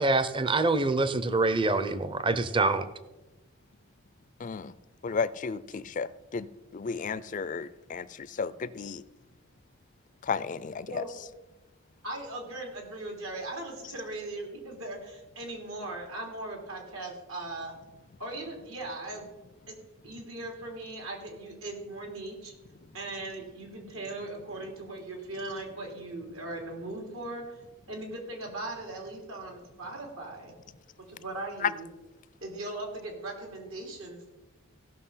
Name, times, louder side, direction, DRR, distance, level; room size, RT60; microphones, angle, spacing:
voice 1, 0.0-2.9, right 3 dB, 25° right, 12 dB, 0.6 m, -25 dB
voice 2, 4.4-4.7 5.0-9.0 10.2-11.0 31.6-31.7, left 5 dB, 35° left, 16 dB, 0.4 m, -33 dB
voice 3, 12.0-17.7 18.2-19.3 19.7-19.8 20.0-22.5 22.9-30.5 31.1-31.9 32.4-34.3, right 2 dB, 80° right, 1 dB, 3.2 m, -39 dB
16.0 x 6.1 x 5.6 m, 1.1 s
head